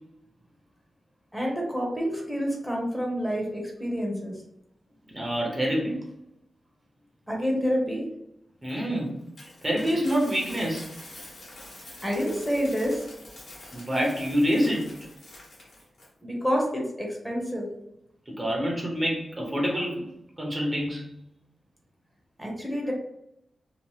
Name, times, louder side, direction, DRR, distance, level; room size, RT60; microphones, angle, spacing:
voice 1, 1.3-4.3 7.3-8.0 12.0-13.0 16.2-17.7 22.4-22.9, equal, 5° left, -1 dB, 0.8 m, -28 dB
voice 2, 5.1-6.1 8.6-9.2 9.6-10.9 13.7-14.9 18.3-20.1 20.4-21.1, equal, 25° right, -1 dB, 0.7 m, -26 dB
Coin (dropping), 8.6-16.1, left 1 dB, 75° left, 1.2 m, -46 dB
2.9 x 2.0 x 3.1 m, 0.80 s
wide cardioid pair, 110°, 0 cm